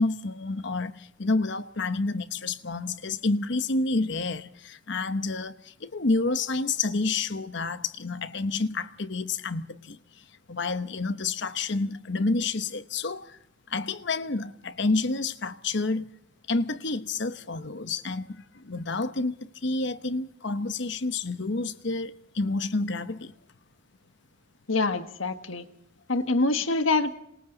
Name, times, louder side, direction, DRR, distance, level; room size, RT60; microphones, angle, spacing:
voice 1, 0.0-13.4 13.7-16.1 16.5-23.3, left 3 dB, 60° left, 1.0 m, -29 dB
voice 2, 24.7-25.6 26.1-27.1, left 3 dB, 80° left, 1.6 m, -25 dB
27.0 x 26.5 x 4.0 m
head